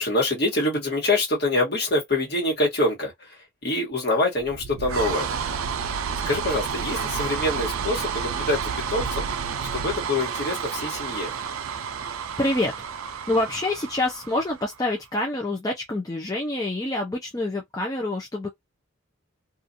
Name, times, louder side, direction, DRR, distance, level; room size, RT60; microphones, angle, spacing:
voice 1, 0.0-5.3 6.2-9.3 9.7-11.3, left 2 dB, 50° left, 1.4 m, -25 dB
sound 1, 4.4-14.9, right 6 dB, 85° right, 0.4 m, -30 dB
voice 2, 12.4-18.5, left 2 dB, 15° left, 0.5 m, -27 dB
2.5 x 2.3 x 2.6 m
head